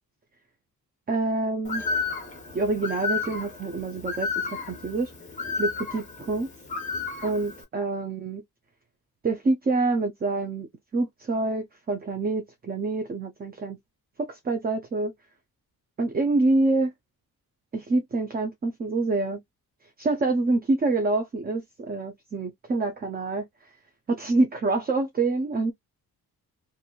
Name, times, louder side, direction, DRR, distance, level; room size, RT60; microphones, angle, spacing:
voice 1, 1.1-1.8 2.5-5.1 5.6-6.5 7.2-8.4 9.2-10.7 10.9-13.8 14.2-15.1 16.0-16.9 17.7-19.4 20.0-23.4 24.1-25.7, right 3 dB, 25° right, 0.5 m, -26 dB
Bird, 1.6-7.6, left 4 dB, 20° left, 0.9 m, -32 dB
2.9 x 2.6 x 2.3 m
wide cardioid pair, 165°, 37 cm